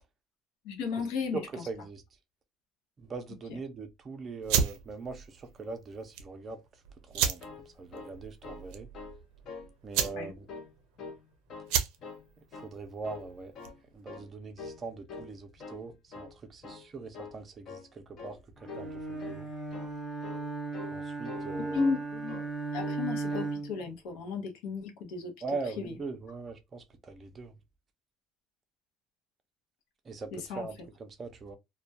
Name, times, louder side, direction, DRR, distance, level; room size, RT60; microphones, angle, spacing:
voice 1, 0.6-1.4 3.5-3.6 10.1-10.3 21.7-22.4 22.7-25.3 25.8-25.9 30.3-30.7, left 4 dB, 85° left, 0.7 m, -34 dB
voice 2, 1.3-2.0 3.0-6.6 7.1-7.4 7.8-8.9 9.8-10.5 12.4-13.5 13.9-19.5 20.9-21.8 25.4-27.5 30.0-31.6, right 4 dB, 25° right, 0.5 m, -41 dB
sound 1, 4.4-13.9, right 8 dB, 90° right, 0.4 m, -34 dB
sound 2, 7.2-8.7 8.9-9.2 9.4-10.1 10.5-11.2 11.5-12.2 12.5-12.8 13.0-13.8 14.1-14.3 14.6-14.8 15.1-15.8 16.1-16.3 16.6-16.9 17.1-17.4 17.6-17.9 18.2-18.4 18.7-18.9 19.2-19.4 19.7-19.9 20.2-20.5 20.7-21.0 21.2-22.0 22.3-22.5 22.8-23.0 23.3-23.5, left 4 dB, 45° left, 0.6 m, -45 dB
Bowed string instrument, 18.6-23.9, right 3 dB, 10° left, 0.7 m, -36 dB
2.3 x 2.1 x 2.6 m
cardioid pair, 145°, 0 cm